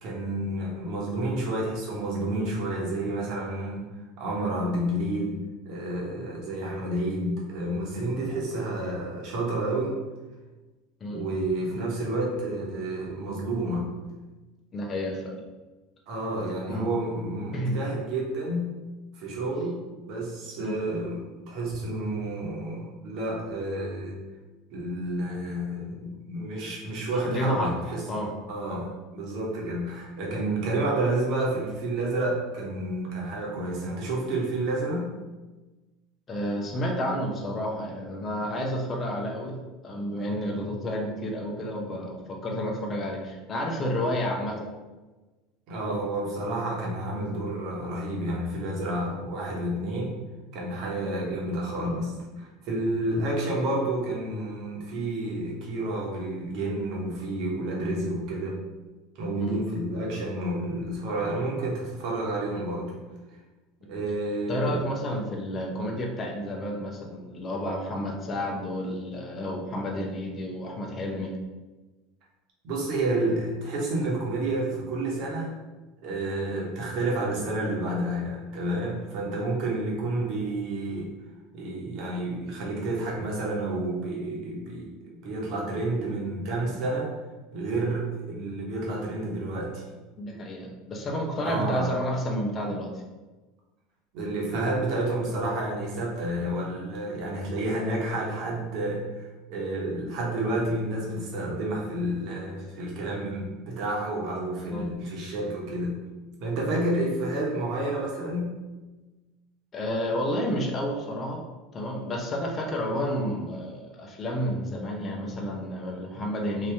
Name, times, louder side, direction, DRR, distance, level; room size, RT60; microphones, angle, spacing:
voice 1, 0.0-3.8 4.2-5.4 5.6-10.0 11.1-13.9 16.1-18.8 19.1-19.8 20.1-24.2 24.7-28.0 28.5-35.2 40.6-40.7 45.7-50.2 50.5-58.6 59.1-63.0 63.8-64.9 72.6-75.5 76.0-81.1 81.5-87.1 87.5-89.8 91.4-91.9 94.1-106.0 106.4-108.5, right 1 dB, 60° right, -3 dB, 1.1 m, -30 dB
voice 2, 14.7-15.4 16.6-16.8 17.5-17.8 20.6-20.8 27.2-27.7 28.1-28.3 36.3-39.6 39.8-44.7 59.4-59.6 64.5-71.4 90.2-92.9 104.7-104.8 109.7-111.4 111.7-116.7, equal, 30° left, -1 dB, 0.7 m, -30 dB
3.0 x 2.7 x 3.4 m, 1.2 s
hypercardioid pair, 95°, 0 cm